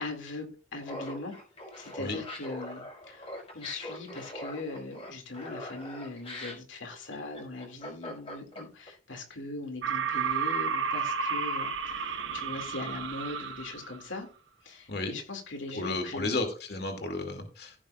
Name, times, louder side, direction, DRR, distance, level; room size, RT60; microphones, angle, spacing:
voice 1, 0.0-1.3 1.8-14.3 14.6-16.3, left 2 dB, 80° left, 2.3 m, -40 dB
Laughter, 0.8-8.9, left 1 dB, 30° left, 5.5 m, -42 dB
sound 1, 9.8-14.0, right 5 dB, 80° right, 1.1 m, -32 dB
voice 2, 15.7-17.7, left 2 dB, 55° left, 2.3 m, -33 dB
15.5 x 8.7 x 2.4 m
head